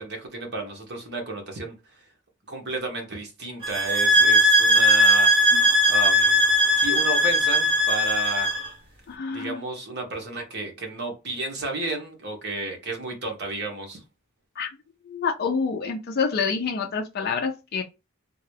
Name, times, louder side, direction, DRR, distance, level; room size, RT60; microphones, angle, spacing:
voice 1, 0.0-1.7 2.5-5.6 5.9-6.4 6.8-8.6 9.3-14.0, right 3 dB, 50° right, 1.2 m, -32 dB
sound 1, 3.6-8.7, equal, 25° right, 1.2 m, -19 dB
voice 2, 9.1-9.6 14.6-14.7 15.1-17.8, left 5 dB, 45° left, 0.4 m, -27 dB
3.8 x 2.3 x 3.2 m
head